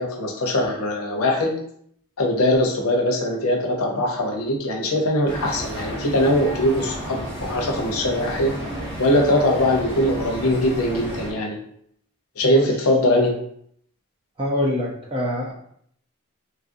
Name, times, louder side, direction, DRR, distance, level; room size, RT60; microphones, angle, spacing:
voice 1, 0.0-1.6 2.2-8.6 9.0-11.6 12.4-13.3, left 1 dB, 85° left, 1 dB, 0.7 m, -21 dB
sound 1, 5.3-11.3, right 1 dB, 55° right, 1.1 m, -32 dB
voice 2, 14.4-15.5, left 1 dB, 25° right, -3 dB, 0.5 m, -24 dB
3.0 x 2.5 x 2.6 m, 0.67 s
head